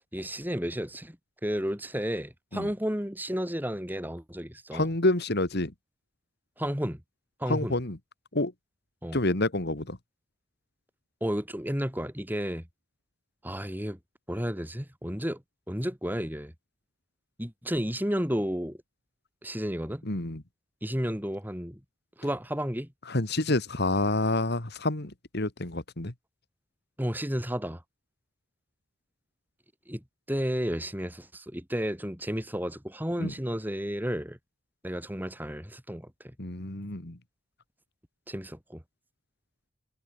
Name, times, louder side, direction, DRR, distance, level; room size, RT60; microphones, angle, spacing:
voice 1, 0.1-1.2 1.4-4.9 6.6-7.0 7.4-7.8 9.0-9.2 11.2-12.7 13.4-14.0 14.3-15.4 15.7-16.5 17.4-18.8 19.4-20.0 20.8-21.8 22.2-22.9 27.0-27.8 29.9-34.4 34.8-36.3 38.3-38.8, equal, 10° right, 5.4 m, -32 dB
voice 2, 4.7-5.7 7.5-8.0 8.3-8.5 9.1-10.0 20.1-20.4 23.1-26.1 33.2-33.3 36.4-37.2, left 2 dB, 50° left, 2.0 m, -28 dB
head